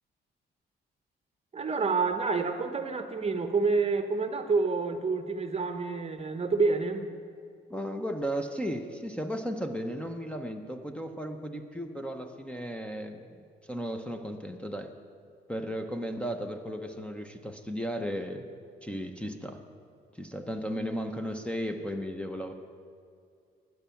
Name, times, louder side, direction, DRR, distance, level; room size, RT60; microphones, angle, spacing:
voice 1, 1.5-7.1, right 4 dB, 30° right, 8 dB, 0.8 m, -28 dB
voice 2, 7.7-14.9 15.5-18.4 18.8-19.6 20.1-22.5, equal, 5° left, 6 dB, 0.7 m, -35 dB
12.0 x 9.4 x 5.8 m, 2.3 s
cardioid pair, 90°, 20 cm